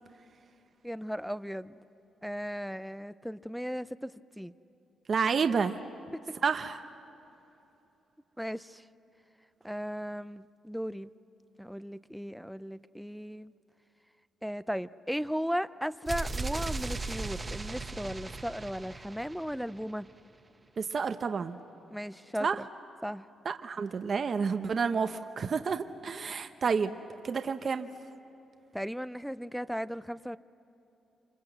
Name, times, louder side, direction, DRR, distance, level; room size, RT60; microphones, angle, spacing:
voice 1, 0.8-1.8 2.2-4.5 6.1-6.4 8.4-8.8 9.6-11.1 11.6-13.5 14.4-20.1 21.9-22.7 23.0-23.3 28.7-30.4, equal, ahead, 15 dB, 0.5 m, -36 dB
voice 2, 5.1-5.8 6.4-6.8 20.8-21.6 22.4-22.6 23.4-27.0 27.2-27.9, right 5 dB, 45° right, 8 dB, 0.8 m, -30 dB
sound 1, 16.1-19.9, right 3 dB, 20° right, 1.1 m, -37 dB
26.5 x 26.5 x 7.9 m, 2.9 s
cardioid pair, 115°, 0 cm